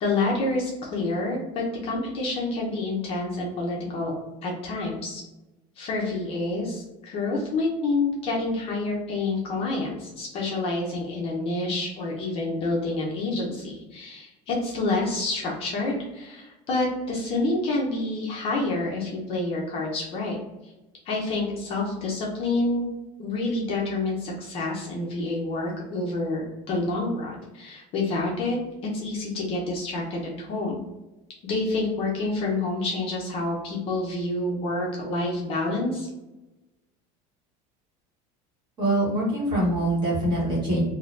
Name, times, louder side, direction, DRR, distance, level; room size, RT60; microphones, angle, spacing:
voice 1, 0.0-5.2 5.8-20.4 20.6-20.7 21.1-22.9 23.2-28.6 28.9-30.8 31.4-36.1, left 2 dB, 35° left, -2 dB, 0.5 m, -28 dB
voice 2, 38.8-40.8, right 1 dB, 25° right, -5 dB, 1.1 m, -24 dB
2.6 x 2.1 x 3.0 m, 1.0 s
cardioid pair, 170°, 17 cm